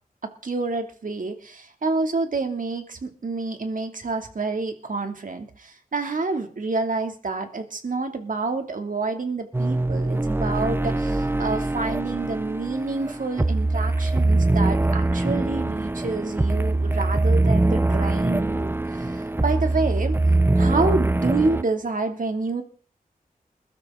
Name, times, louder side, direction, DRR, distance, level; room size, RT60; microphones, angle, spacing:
voice 1, 0.4-20.1 20.6-22.6, right 3 dB, 65° right, 6 dB, 2.6 m, -28 dB
sound 1, 9.5-21.6, right 2 dB, 15° right, 0.6 m, -23 dB
21.5 x 12.5 x 3.8 m, 0.42 s
wide cardioid pair, 65°, 15 cm